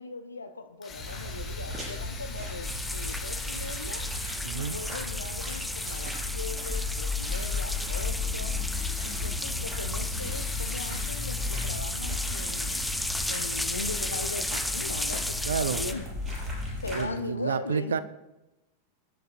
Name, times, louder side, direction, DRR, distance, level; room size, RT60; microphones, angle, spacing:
voice 1, 0.0-4.1 4.5-8.6 9.0-12.9 13.3-16.1 16.8-18.0, left 3 dB, 75° left, 0.6 m, -39 dB
Drill, 0.8-5.0 5.7-6.7 7.2-8.0 8.7-9.6 10.2-11.8 12.2-14.8, left 5 dB, 20° left, 2.3 m, -46 dB
sound 1, 0.9-17.0, left 3 dB, 20° right, 5.1 m, -34 dB
sound 2, 2.6-15.9, left 1 dB, 5° left, 0.6 m, -34 dB
voice 2, 4.4-4.8 15.5-15.8 16.9-18.0, right 7 dB, 65° right, 0.6 m, -29 dB
24.5 x 10.5 x 2.5 m
figure-of-eight pair, 90°, 0 cm